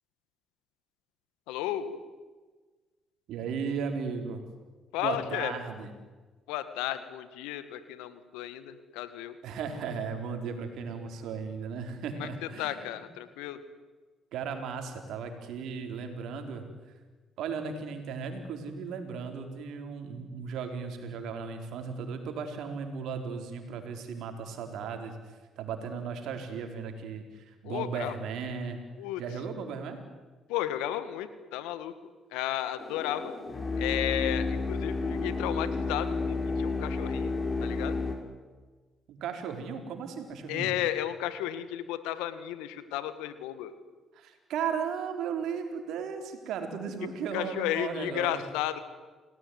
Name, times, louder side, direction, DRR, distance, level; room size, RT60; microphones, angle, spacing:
voice 1, 1.5-2.0 4.9-5.5 6.5-9.4 12.2-13.6 27.6-28.1 29.0-29.2 30.5-31.9 32.3-33.3 33.8-37.3 37.6-38.0 40.5-43.7 47.3-48.8, left 12 dB, 80° left, 12 dB, 1.9 m, -33 dB
voice 2, 3.3-4.4 5.0-5.9 9.4-13.0 14.3-16.6 17.4-25.2 25.6-28.8 29.2-30.0 39.1-40.7 44.1-48.4, right 6 dB, 70° right, 5 dB, 4.3 m, -36 dB
sound 1, 32.8-38.1, left 3 dB, 35° left, 6.4 m, -31 dB
29.0 x 18.5 x 9.7 m, 1.3 s
hypercardioid pair, 50°, 0 cm